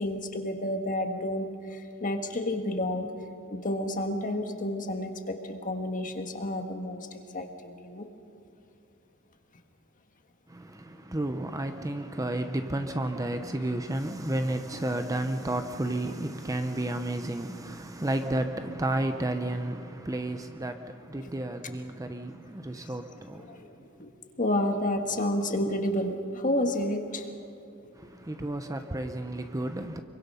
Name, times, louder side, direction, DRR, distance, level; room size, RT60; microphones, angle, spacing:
voice 1, 0.0-3.1 3.5-8.1 21.2-21.3 23.4-24.1 24.4-27.3 29.0-29.1, left 1 dB, 40° left, 1.7 m, -30 dB
voice 2, 10.5-23.7 27.9-30.0, right 1 dB, 15° right, 0.7 m, -32 dB
25.5 x 23.5 x 5.6 m
head